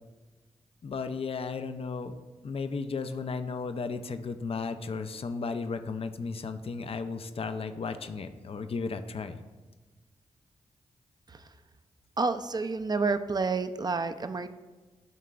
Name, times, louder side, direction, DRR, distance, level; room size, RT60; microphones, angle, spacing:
voice 1, 0.8-2.1 2.4-9.4, left 4 dB, 45° left, 9 dB, 0.4 m, -34 dB
voice 2, 12.2-14.5, right 4 dB, 30° right, 10 dB, 0.4 m, -29 dB
11.0 x 3.7 x 2.3 m, 1.3 s
supercardioid pair, 40°, 13 cm